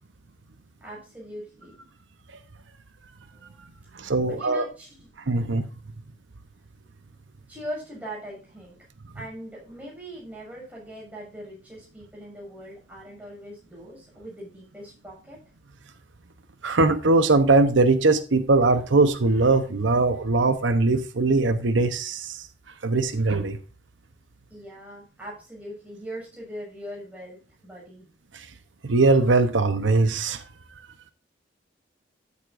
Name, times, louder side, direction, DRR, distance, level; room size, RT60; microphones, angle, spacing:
voice 1, 0.8-1.7 3.1-3.6 4.0-5.1 7.5-8.8 9.1-15.4 24.5-28.1, equal, 10° right, 6.3 m, -41 dB
voice 2, 3.9-4.6 5.3-5.6 16.6-22.4 22.8-23.6 28.3-28.5 28.8-30.4, right 3 dB, 85° right, 0.9 m, -21 dB
13.0 x 8.3 x 2.6 m
head